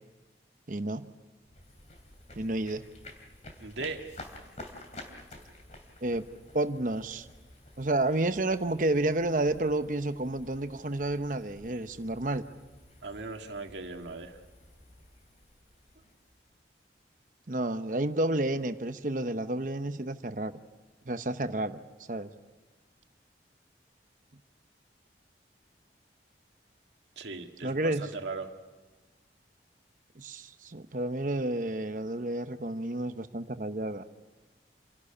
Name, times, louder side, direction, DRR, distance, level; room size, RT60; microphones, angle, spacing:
voice 1, 0.7-1.0 2.4-2.8 6.0-6.2 6.5-7.3 7.8-12.4 17.5-20.5 21.1-21.8 22.1-22.3 27.6-28.1 30.2-34.0, right 2 dB, 45° right, 10 dB, 0.9 m, -30 dB
sound 1, 1.4-16.6, left 2 dB, 40° left, 2.8 m, -51 dB
voice 2, 3.6-4.0 13.0-14.4 27.2-28.5, right 3 dB, 80° right, 4 dB, 1.8 m, -38 dB
28.0 x 12.0 x 9.9 m, 1.3 s
head